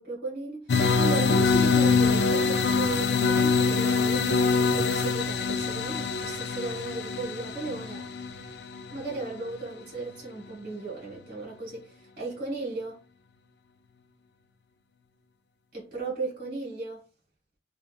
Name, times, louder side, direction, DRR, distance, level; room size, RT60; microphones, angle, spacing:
voice 1, 0.0-8.1 8.9-13.0 15.7-17.0, right 3 dB, 50° right, 1.3 m, -36 dB
sound 1, 0.7-9.5, left 4 dB, 65° left, 0.4 m, -24 dB
3.1 x 2.7 x 2.2 m
head